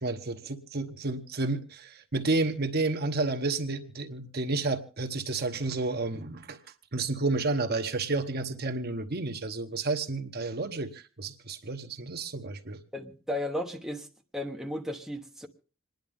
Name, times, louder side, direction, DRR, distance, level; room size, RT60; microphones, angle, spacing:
voice 1, 0.0-6.6 6.9-12.8, right 3 dB, 50° right, 1.0 m, -31 dB
voice 2, 12.9-14.1 14.3-15.5, left 1 dB, ahead, 1.1 m, -34 dB
27.0 x 10.5 x 3.6 m
head